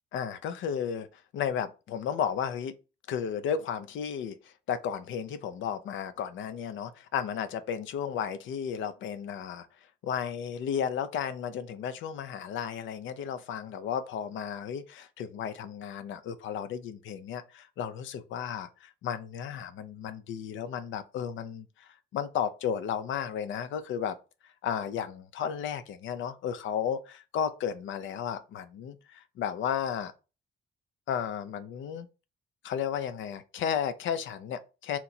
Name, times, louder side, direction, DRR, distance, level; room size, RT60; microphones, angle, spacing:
voice 1, 0.1-2.7 3.1-9.7 10.0-24.2 24.4-30.1 31.1-32.1 32.6-35.0, left 8 dB, 75° left, 0.5 m, -33 dB
2.9 x 2.4 x 4.1 m
cardioid pair, 90°, 20 cm